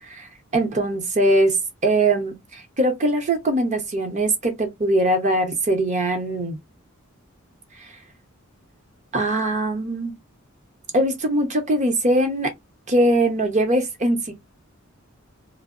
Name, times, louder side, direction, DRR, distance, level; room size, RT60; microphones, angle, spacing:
voice 1, 0.5-1.6 1.8-6.6 7.8-7.9 9.1-10.2 10.9-12.5 12.9-14.3, right 1 dB, 35° right, 0.8 m, -21 dB
2.7 x 2.0 x 2.4 m
head